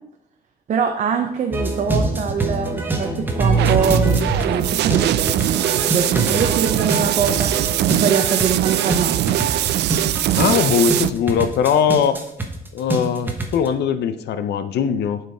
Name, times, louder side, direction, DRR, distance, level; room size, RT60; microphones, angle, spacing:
voice 1, 0.7-9.5, right 6 dB, 45° right, 5 dB, 0.7 m, -24 dB
sound 1, 1.5-13.7, right 2 dB, 10° right, 1.0 m, -24 dB
sound 2, 3.6-11.1, right 13 dB, 85° right, 0.4 m, -21 dB
voice 2, 10.4-12.2 12.7-15.2, left 7 dB, 85° left, 12 dB, 0.6 m, -20 dB
11.0 x 4.7 x 4.8 m, 0.83 s
cardioid pair, 170°, 17 cm